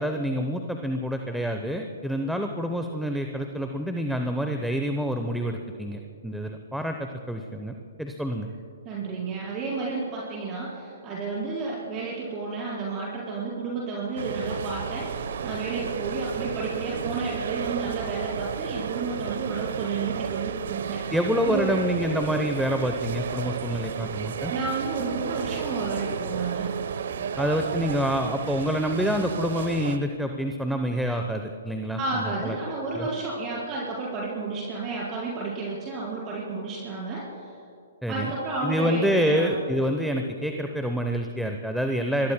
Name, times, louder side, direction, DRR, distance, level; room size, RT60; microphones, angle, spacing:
voice 1, 0.0-8.5 21.1-24.5 27.4-32.6 32.9-33.1 38.0-38.3 38.6-42.3, equal, ahead, 4 dB, 0.8 m, -27 dB
voice 2, 8.8-21.1 21.4-21.8 24.5-26.7 32.0-37.5 38.1-39.6 42.2-42.3, right 3 dB, 30° right, -6 dB, 4.8 m, -31 dB
sound 1, 14.2-30.0, right 7 dB, 60° right, 0.9 m, -33 dB
28.0 x 21.5 x 2.2 m, 2.7 s
figure-of-eight pair, 125°, 0 cm